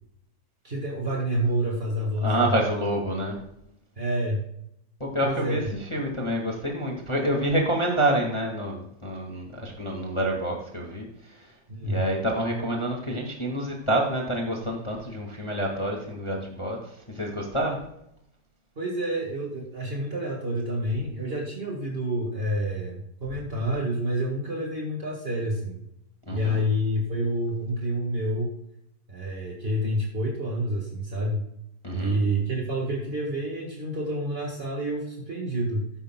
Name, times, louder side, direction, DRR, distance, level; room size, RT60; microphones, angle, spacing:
voice 1, 0.6-2.6 4.0-4.4 5.2-5.7 11.7-12.1 18.7-25.8 26.3-28.5 29.1-31.4 31.9-35.8, right 1 dB, 40° right, -1 dB, 0.8 m, -28 dB
voice 2, 2.2-3.4 5.0-11.5 11.8-16.8 17.1-17.8 26.3-26.6 31.8-32.2, right 1 dB, 25° left, 0 dB, 0.6 m, -27 dB
13.5 x 10.5 x 2.3 m, 0.78 s
omnidirectional pair, 3.9 m